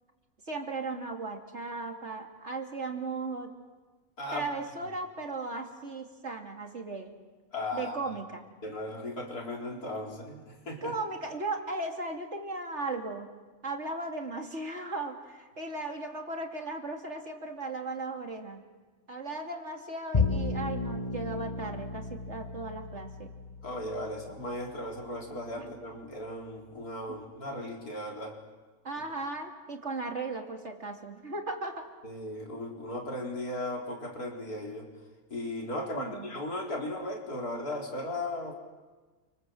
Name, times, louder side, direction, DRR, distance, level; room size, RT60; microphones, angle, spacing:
voice 1, 0.5-3.5 4.3-7.1 7.7-8.4 10.8-13.3 13.6-18.6 19.1-23.3 25.6-25.7 28.8-31.9 35.8-36.3, right 3 dB, 50° right, 2 dB, 3.1 m, -36 dB
voice 2, 7.5-7.9 8.6-10.9 23.6-28.3 32.0-34.9 35.3-38.6, left 1 dB, 80° left, 0 dB, 4.6 m, -36 dB
Bowed string instrument, 20.1-26.6, left 4 dB, 25° left, 1.4 m, -35 dB
29.0 x 26.0 x 7.9 m, 1.3 s
omnidirectional pair, 1.6 m